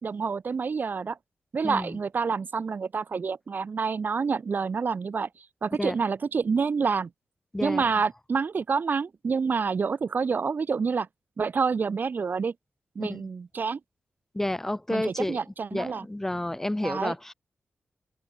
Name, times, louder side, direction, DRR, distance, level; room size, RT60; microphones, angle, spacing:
voice 1, 0.0-1.2 1.5-5.3 5.6-7.1 7.6-11.1 11.4-12.5 13.0-13.8 14.9-16.0 16.8-17.1, right 5 dB, 50° right, 4.0 m, -28 dB
voice 2, 1.6-2.0 5.8-6.0 7.5-7.8 13.0-13.3 14.3-15.4 15.7-17.3, left 1 dB, 10° left, 1.8 m, -30 dB
wide cardioid pair, 160°, 4 cm